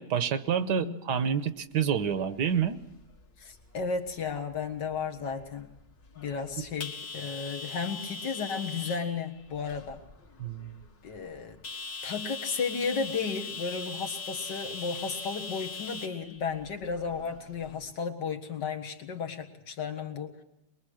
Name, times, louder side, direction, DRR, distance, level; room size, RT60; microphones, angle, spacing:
voice 1, 0.0-2.8 10.4-10.8, right 8 dB, 75° right, 12 dB, 1.6 m, -28 dB
voice 2, 0.6-1.0 3.4-5.7 6.2-10.0 11.0-11.6 12.0-20.4, left 5 dB, 80° left, 4 dB, 2.2 m, -34 dB
sound 1, 1.8-17.9, left 4 dB, 55° left, 2.4 m, -42 dB
22.5 x 22.0 x 6.4 m, 0.88 s
omnidirectional pair, 1.8 m